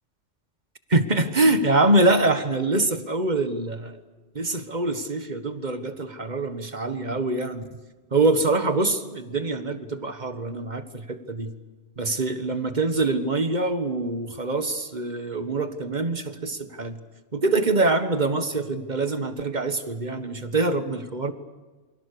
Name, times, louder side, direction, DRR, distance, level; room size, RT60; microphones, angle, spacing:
voice 1, 0.9-4.0 4.3-7.7 8.1-11.5 12.0-17.0 17.3-21.3, right 2 dB, 35° right, 9 dB, 1.6 m, -24 dB
28.5 x 23.5 x 6.9 m, 1.3 s
omnidirectional pair, 1.3 m